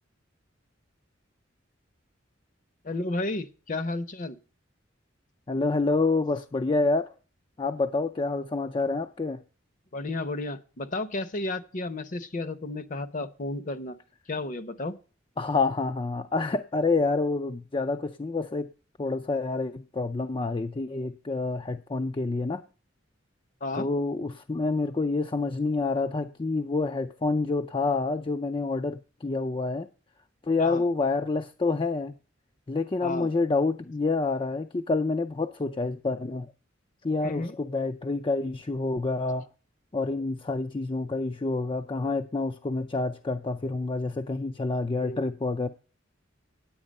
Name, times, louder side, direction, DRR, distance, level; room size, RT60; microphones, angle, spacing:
voice 1, 2.8-4.4 9.9-14.0 14.3-15.0 23.6-23.9 30.6-30.8 33.0-33.3 37.2-37.5 45.0-45.2, left 2 dB, 40° left, 0.8 m, -32 dB
voice 2, 5.5-7.1 7.6-9.4 15.4-18.7 19.0-22.6 23.7-29.9 30.4-32.1 32.7-36.5 37.0-39.5 39.9-45.7, left 3 dB, 25° left, 0.4 m, -28 dB
9.6 x 8.8 x 5.3 m
head